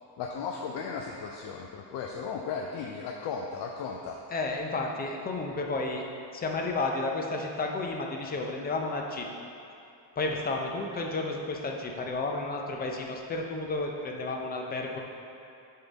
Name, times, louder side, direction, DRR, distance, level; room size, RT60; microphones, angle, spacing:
voice 1, 0.2-4.2, left 5 dB, 75° left, 1 dB, 0.6 m, -36 dB
voice 2, 4.3-6.0 6.3-9.3 10.2-15.0, left 3 dB, 20° left, 1 dB, 0.5 m, -32 dB
10.0 x 3.8 x 4.0 m, 2.6 s
cardioid pair, 175°, 43 cm